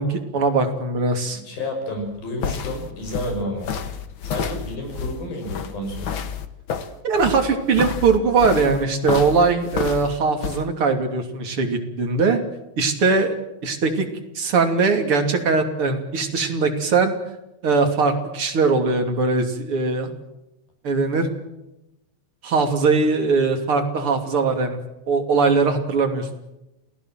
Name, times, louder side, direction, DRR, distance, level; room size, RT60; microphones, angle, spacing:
voice 1, 0.0-1.4 7.0-12.4 12.8-13.3 13.6-14.1 14.4-17.1 17.6-20.1 20.8-21.3 22.4-24.8 25.1-26.4, right 4 dB, 40° right, 4 dB, 3.5 m, -20 dB
voice 2, 1.3-3.7 4.2-6.1, left 1 dB, 80° left, 4 dB, 8.0 m, -30 dB
sound 1, 2.0-10.6, left 7 dB, 60° left, 1.4 m, -30 dB
28.5 x 17.5 x 7.7 m, 0.90 s
omnidirectional pair, 4.1 m